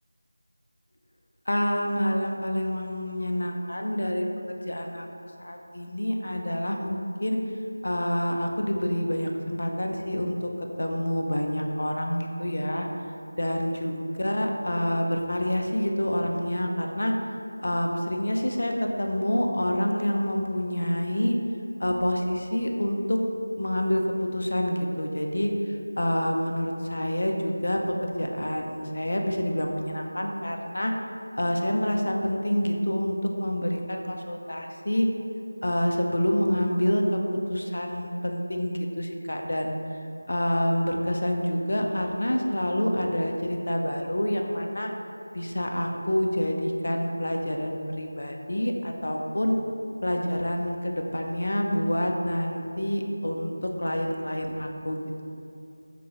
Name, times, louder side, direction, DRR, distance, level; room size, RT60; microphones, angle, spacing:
voice 1, 1.5-5.1 5.4-7.4 7.8-10.5 10.8-12.9 13.4-17.1 17.6-21.4 21.8-23.2 23.6-30.9 31.4-35.1 35.6-37.2 37.5-39.8 40.3-44.9 45.3-49.6 50.0-55.2, equal, 65° left, 2 dB, 0.5 m, -27 dB
3.8 x 2.5 x 4.3 m, 2.7 s
figure-of-eight pair, 170°, 0 cm